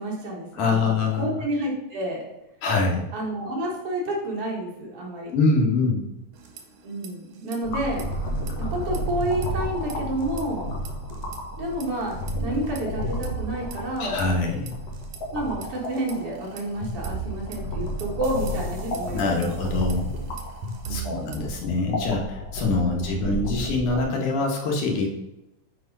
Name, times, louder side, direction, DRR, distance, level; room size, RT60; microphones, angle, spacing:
voice 1, 0.0-2.2 3.1-5.3 6.8-8.0 8.6-10.7 11.6-12.2 12.4-14.2 15.3-19.6 20.8-21.6 22.9-23.0, right 1 dB, 50° right, -2 dB, 2.5 m, -30 dB
voice 2, 0.5-1.3 2.6-3.0 5.3-6.0 14.0-14.8 19.1-20.1 20.9-25.1, left 3 dB, 80° left, 1 dB, 2.9 m, -24 dB
sound 1, 6.3-7.1 7.4-7.6 7.9-10.6 10.9-11.4 11.8-15.2 15.6-21.6, right 4 dB, 70° right, 2.6 m, -38 dB
sound 2, 7.6-24.0, equal, 55° left, 2.7 m, -32 dB
7.8 x 4.8 x 5.4 m, 0.90 s
omnidirectional pair, 3.5 m